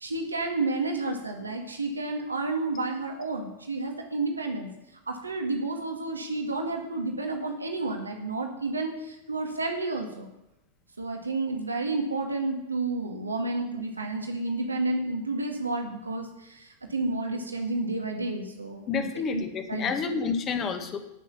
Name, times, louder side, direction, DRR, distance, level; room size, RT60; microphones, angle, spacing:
voice 1, 0.0-4.7 5.1-10.3 11.0-19.9, right 2 dB, 80° right, 3 dB, 1.9 m, -31 dB
voice 2, 18.9-21.0, left 5 dB, 30° left, 7 dB, 1.9 m, -29 dB
18.5 x 6.5 x 7.2 m, 0.89 s
figure-of-eight pair, 90°, 0 cm